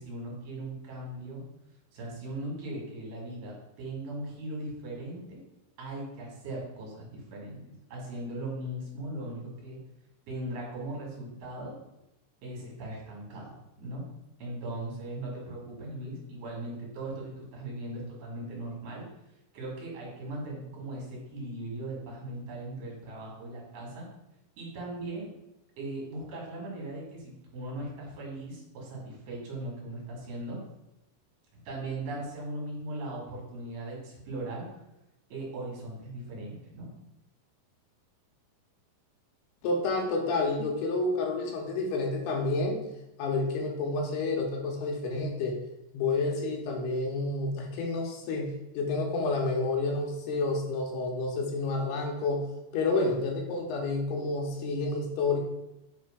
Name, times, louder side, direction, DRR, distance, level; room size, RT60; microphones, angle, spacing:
voice 1, 0.0-1.4 1.9-5.4 5.8-7.6 7.9-9.8 10.3-11.8 12.4-14.0 14.4-19.1 19.5-24.0 24.6-25.3 25.8-30.6 31.6-34.7 35.3-36.9, right 1 dB, 55° right, -3 dB, 3.1 m, -39 dB
voice 2, 39.6-42.9 43.2-45.6 45.9-52.4 52.7-55.4, left 3 dB, 80° left, 1 dB, 2.7 m, -29 dB
6.3 x 3.3 x 4.9 m, 0.90 s
omnidirectional pair, 5.0 m